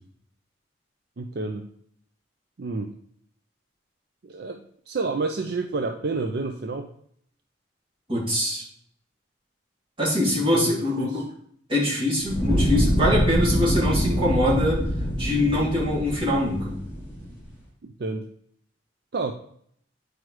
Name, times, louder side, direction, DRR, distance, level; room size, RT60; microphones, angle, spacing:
voice 1, 1.2-1.7 2.6-2.9 4.2-6.9 10.5-11.2 17.8-18.2 19.1-19.3, right 3 dB, 55° right, 4 dB, 0.5 m, -29 dB
voice 2, 8.1-8.6 10.0-11.2 11.7-14.8 15.1-16.8, left 1 dB, 25° right, -7 dB, 2.7 m, -23 dB
Fire, 12.2-17.4, equal, 10° right, 3.0 m, -25 dB
9.3 x 4.9 x 3.2 m, 0.66 s
head